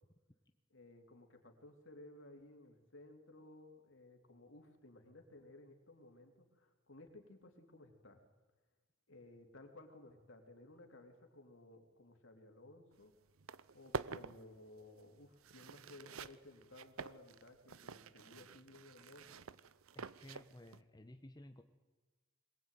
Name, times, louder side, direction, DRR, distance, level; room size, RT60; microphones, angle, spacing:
voice 1, 0.7-8.2 9.1-13.1 13.7-19.4, left 2 dB, 65° left, 4 dB, 3.6 m, -58 dB
sound 1, 12.9-13.0 13.3-20.8, right 5 dB, 90° right, 0.8 m, -48 dB
voice 2, 19.9-21.6, left 1 dB, 20° left, 5 dB, 1.2 m, -55 dB
22.5 x 20.5 x 9.4 m, 1.2 s
head